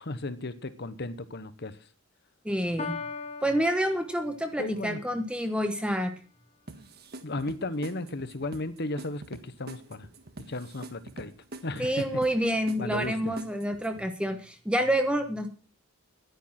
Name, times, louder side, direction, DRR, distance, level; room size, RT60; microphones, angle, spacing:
voice 1, 0.0-1.8 4.6-5.0 7.2-10.1 10.5-11.3 11.6-12.0 12.8-13.3, left 2 dB, 55° left, 1.2 m, -35 dB
voice 2, 2.4-3.0 3.4-6.1 11.8-15.5, equal, 5° right, 1.1 m, -28 dB
Piano, 2.8-4.8, left 4 dB, 30° left, 2.1 m, -39 dB
sound 1, 6.7-14.1, right 2 dB, 50° right, 1.5 m, -45 dB
11.0 x 10.5 x 6.0 m
head